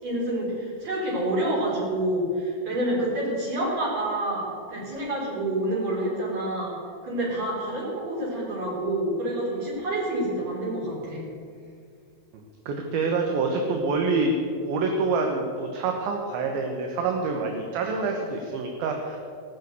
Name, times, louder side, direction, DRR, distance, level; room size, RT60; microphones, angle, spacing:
voice 1, 0.0-6.7 7.0-11.2, right 1 dB, 45° right, -5 dB, 5.0 m, -28 dB
voice 2, 12.7-14.3 14.6-19.2, right 4 dB, 75° right, 2 dB, 2.7 m, -26 dB
18.5 x 6.5 x 8.0 m, 2.3 s
omnidirectional pair, 4.6 m